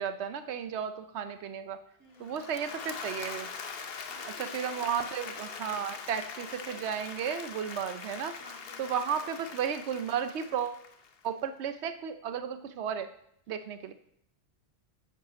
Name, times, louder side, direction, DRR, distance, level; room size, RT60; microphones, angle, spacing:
voice 1, 0.0-1.8 2.2-3.5 4.4-8.3 8.8-10.9 11.2-13.1 13.5-13.9, right 8 dB, 90° right, 10 dB, 0.9 m, -34 dB
voice 2, 2.0-2.8 4.0-5.2 8.3-9.5, equal, 10° right, -2 dB, 2.4 m, -55 dB
Applause / Crowd, 2.2-11.3, left 5 dB, 65° left, 1.0 m, -42 dB
9.5 x 7.4 x 5.1 m, 0.72 s
omnidirectional pair, 1.1 m